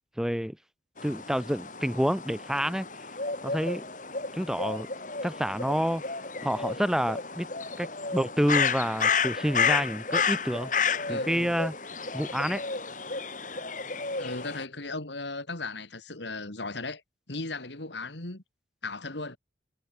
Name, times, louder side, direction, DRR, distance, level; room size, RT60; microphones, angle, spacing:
voice 1, 0.2-0.6 1.0-2.9 3.4-3.8 4.3-4.9 5.2-6.0 6.4-7.5 7.8-10.7 11.1-11.7 12.1-12.6, equal, 5° right, 1.0 m, -28 dB
sound 1, 1.0-14.6, left 5 dB, 40° left, 3.5 m, -31 dB
voice 2, 11.1-11.6 14.2-17.0 17.3-18.4 18.8-19.4, left 3 dB, 70° left, 2.9 m, -36 dB
head